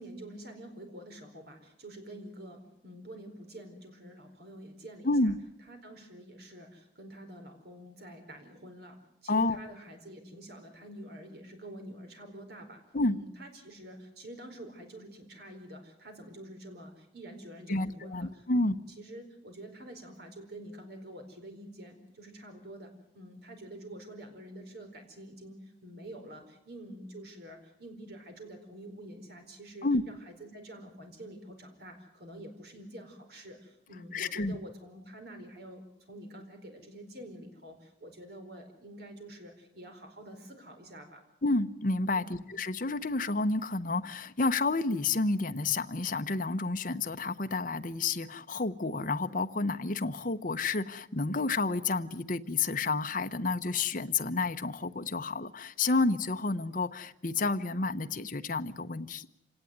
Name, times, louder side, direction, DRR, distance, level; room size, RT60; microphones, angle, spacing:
voice 1, 0.0-5.3 5.7-12.8 13.1-41.2 42.1-42.4, right 1 dB, 60° right, 5 dB, 4.6 m, -47 dB
voice 2, 5.0-5.4 9.3-9.6 12.9-13.2 17.7-18.8 29.8-30.0 34.1-34.6 41.4-59.3, left 3 dB, 45° left, 9 dB, 1.0 m, -30 dB
27.0 x 18.0 x 9.5 m, 0.81 s
head